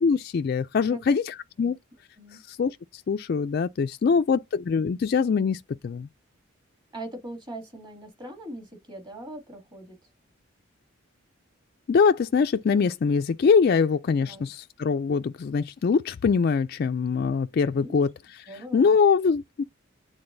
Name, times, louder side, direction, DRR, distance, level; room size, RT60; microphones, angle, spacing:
voice 1, 0.0-1.8 2.5-2.8 3.1-6.1 11.9-18.1 18.7-19.6, left 5 dB, 50° left, 0.3 m, -23 dB
voice 2, 1.6-2.4 4.0-4.4 6.9-10.0 14.2-14.5 17.4-18.0 18.5-19.0, right 1 dB, 20° right, 2.3 m, -42 dB
9.7 x 3.7 x 2.6 m
head